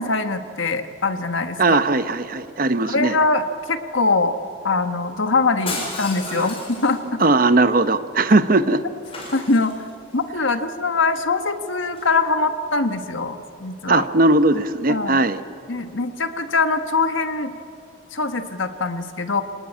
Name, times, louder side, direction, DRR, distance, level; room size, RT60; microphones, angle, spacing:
voice 1, 0.0-1.8 2.9-4.4 4.6-7.2 9.3-9.8 10.1-14.0 14.9-15.2 15.7-17.6 18.1-19.4, left 3 dB, 75° left, 8 dB, 1.5 m, -23 dB
voice 2, 1.6-3.2 6.3-6.5 7.2-8.8 13.9-15.4, right 2 dB, 45° right, 11 dB, 0.9 m, -18 dB
Shatter, 5.7-7.2 9.0-10.2 11.9-12.2, left 3 dB, 30° left, 6.4 m, -33 dB
26.5 x 19.0 x 8.7 m, 2.5 s
head